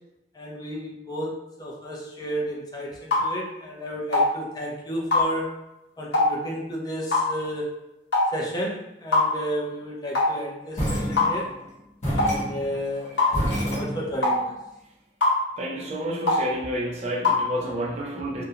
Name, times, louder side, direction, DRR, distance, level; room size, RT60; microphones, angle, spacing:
voice 1, 0.3-5.6 6.0-7.7 8.3-11.5 12.1-14.5, equal, 20° left, -3 dB, 0.4 m, -32 dB
sound 1, 3.1-3.3 4.1-4.3 5.1-5.3 6.1-6.3 7.1-7.3 8.1-8.3 9.1-9.3 10.1-10.3 11.2-11.4 12.2-12.3 13.2-13.3 14.2-14.4 15.2-15.4 16.3-16.4 17.2-17.4, left 3 dB, 85° left, 0.7 m, -21 dB
sound 2, 10.7-11.6 12.0-14.4, equal, 40° left, 1.0 m, -28 dB
voice 2, 15.6-18.4, equal, 40° right, -2 dB, 0.4 m, -30 dB
2.3 x 2.1 x 2.7 m, 0.91 s
head